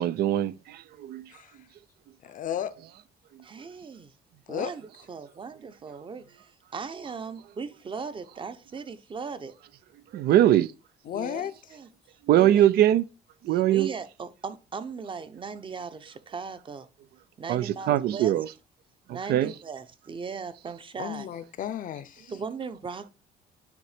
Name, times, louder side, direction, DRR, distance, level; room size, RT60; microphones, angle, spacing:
voice 1, 0.0-1.2 10.1-10.7 12.3-13.0 13.4-13.9 17.5-18.5 19.1-19.5, right 12 dB, 70° right, 0.5 m, -22 dB
voice 2, 2.2-2.7 4.5-4.7 11.1-11.5 21.0-22.3, left 10 dB, 50° left, 0.7 m, -33 dB
voice 3, 3.4-4.1 4.5-9.5 10.3-10.5 11.1-11.9 12.4-12.6 13.5-16.9 17.4-18.3 19.1-21.3 22.3-23.1, right 5 dB, 30° right, 0.8 m, -38 dB
9.3 x 3.1 x 5.0 m
cardioid pair, 110°, 17 cm